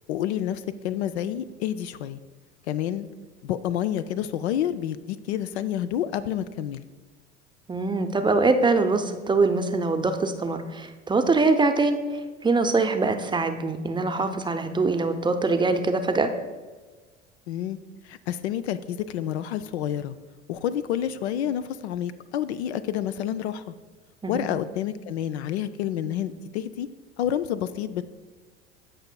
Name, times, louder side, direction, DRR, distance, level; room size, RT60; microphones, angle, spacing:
voice 1, 0.1-2.2 2.7-3.1 3.4-6.8 17.5-17.8 18.0-20.1 20.5-23.7 24.3-26.9 27.2-28.0, left 10 dB, 75° left, 12 dB, 0.5 m, -29 dB
voice 2, 7.7-16.3 24.2-24.5, right 3 dB, 15° right, 7 dB, 0.6 m, -23 dB
15.0 x 5.5 x 2.2 m, 1.4 s
hypercardioid pair, 70°, 34 cm